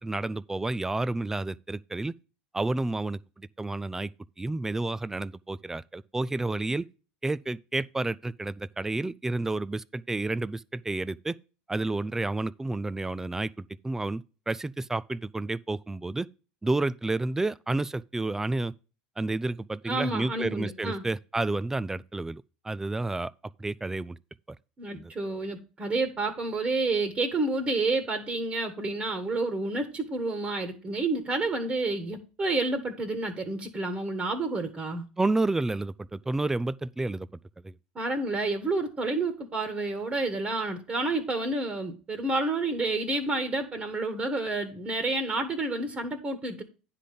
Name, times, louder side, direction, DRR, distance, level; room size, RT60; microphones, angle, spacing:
voice 1, 0.0-2.1 2.5-4.1 4.4-6.9 7.2-11.4 11.7-16.3 16.6-18.7 19.2-23.3 23.6-24.2 24.9-25.1 35.2-37.3 37.6-37.7, right 2 dB, 10° right, 0.4 m, -30 dB
voice 2, 19.8-21.0 24.8-35.1 37.9-46.6, right 2 dB, 30° right, 1.7 m, -29 dB
9.8 x 3.9 x 6.8 m
hypercardioid pair, 85°, 4 cm